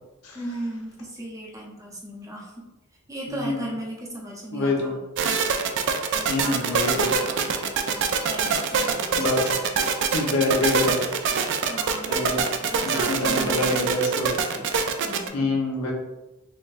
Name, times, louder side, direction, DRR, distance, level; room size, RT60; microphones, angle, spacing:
voice 1, 0.3-2.7 3.1-5.0 6.1-9.5 11.7-13.9 15.0-15.6, right 1 dB, 15° right, -2 dB, 0.6 m, -37 dB
voice 2, 3.3-3.6 4.5-4.9 6.3-7.1 9.2-9.5 10.1-11.0 12.1-12.4 12.8-14.5 15.3-15.9, left 2 dB, 90° left, 0 dB, 0.9 m, -25 dB
sound 1, 5.2-15.3, right 5 dB, 55° right, 0.4 m, -24 dB
4.0 x 3.3 x 2.5 m, 1.1 s
head